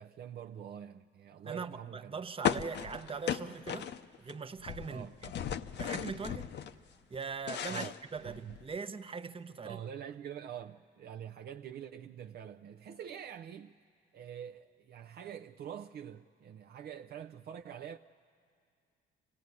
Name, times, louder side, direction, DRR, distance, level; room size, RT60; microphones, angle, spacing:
voice 1, 0.0-2.2 4.9-5.1 7.7-7.9 8.2-8.6 9.6-13.7 14.1-18.0, right 9 dB, 55° right, 0.5 m, -45 dB
voice 2, 1.4-3.9 4.2-5.3 5.8-6.5 7.1-9.8, right 5 dB, 30° right, 0.8 m, -41 dB
sound 1, 2.4-4.3 4.6-6.7 7.1-8.7, left 9 dB, 60° left, 0.6 m, -36 dB
26.0 x 16.5 x 9.6 m
cardioid pair, 90°, 20 cm